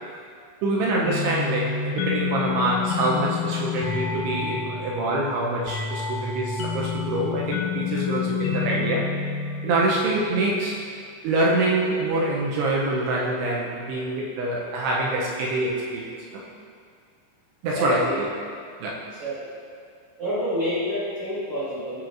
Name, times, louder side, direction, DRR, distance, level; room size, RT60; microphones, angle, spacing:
voice 1, 0.6-9.1 9.6-10.8 11.2-16.4 17.6-18.3 18.8-19.0, right 2 dB, 80° right, -4 dB, 2.5 m, -25 dB
sound 1, 1.1-10.4, left 6 dB, 90° left, 2.9 m, -29 dB
voice 2, 17.7-18.2 19.1-19.5 20.2-22.1, equal, 55° right, -13 dB, 1.7 m, -28 dB
12.5 x 4.5 x 2.5 m, 2.2 s
omnidirectional pair, 5.2 m